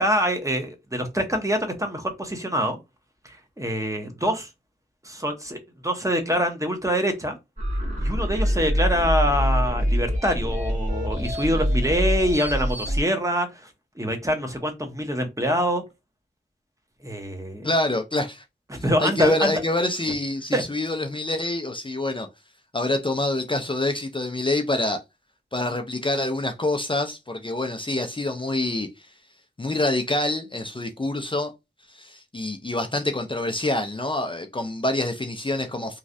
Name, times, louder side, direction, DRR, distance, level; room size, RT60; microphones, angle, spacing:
voice 1, 0.0-2.8 3.2-4.5 5.0-7.4 8.0-13.7 14.0-15.8 17.0-17.7 18.7-19.5 20.5-20.6, equal, 15° right, 0.9 m, -25 dB
sound 1, 7.6-13.0, equal, 40° right, 1.5 m, -24 dB
voice 2, 17.6-18.4 19.0-22.3 22.7-25.0 25.5-29.1 29.6-31.5 31.9-36.0, left 2 dB, 25° left, 0.4 m, -26 dB
3.1 x 2.4 x 2.6 m
wide cardioid pair, 50°, 19 cm